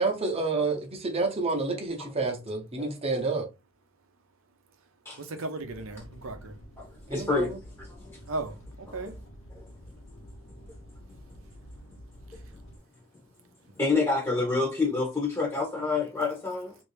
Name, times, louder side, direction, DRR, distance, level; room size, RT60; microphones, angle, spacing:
voice 1, 0.0-3.5 7.1-7.6, right 3 dB, 25° right, 0.8 m, -29 dB
voice 2, 5.2-6.6 8.3-9.2 11.4-11.6 12.3-12.5, right 2 dB, 65° right, 0.6 m, -37 dB
sound 1, 5.6-12.8, equal, 60° left, 1.1 m, -48 dB
voice 3, 6.8-8.2 9.5-9.7 13.8-16.8, left 3 dB, 15° left, 0.9 m, -28 dB
3.2 x 2.6 x 3.2 m
head